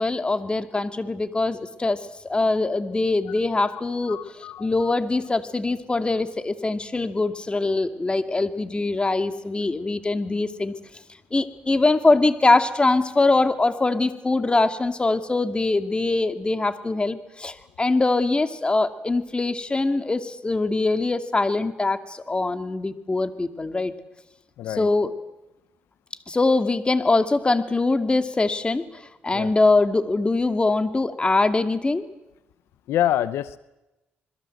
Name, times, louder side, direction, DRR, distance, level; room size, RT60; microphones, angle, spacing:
voice 1, 0.0-2.0 2.2-10.7 11.3-23.9 24.8-25.1 26.3-32.1, left 3 dB, 25° left, 9 dB, 2.5 m, -23 dB
voice 2, 4.1-4.9 24.6-24.9 29.3-29.5 32.9-33.6, left 11 dB, 90° left, 15 dB, 0.8 m, -27 dB
27.0 x 21.5 x 7.9 m, 0.95 s
cardioid pair, 75°, 4 cm